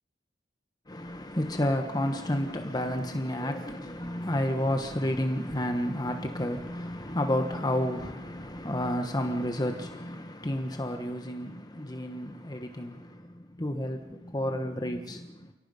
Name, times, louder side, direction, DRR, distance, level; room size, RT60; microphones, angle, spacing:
voice 1, 0.9-15.5, left 1 dB, 25° left, 1.3 m, -31 dB
28.0 x 18.0 x 5.6 m
head